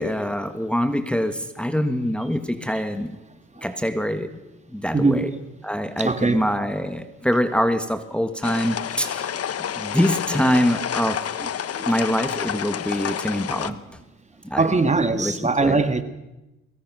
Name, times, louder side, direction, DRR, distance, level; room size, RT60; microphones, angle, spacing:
voice 1, 0.0-3.2 3.6-4.3 4.7-5.3 5.6-9.3 9.8-11.2 11.8-13.8 14.4-14.7 15.2-15.8, equal, 5° left, 8 dB, 1.6 m, -24 dB
voice 2, 6.0-6.4 11.8-11.9 13.7-13.8 14.6-16.0, right 3 dB, 25° right, 9 dB, 1.8 m, -21 dB
sound 1, 8.4-13.7, left 9 dB, 55° left, 1.2 m, -29 dB
23.5 x 22.5 x 6.2 m, 0.97 s
cardioid pair, 90°, 30 cm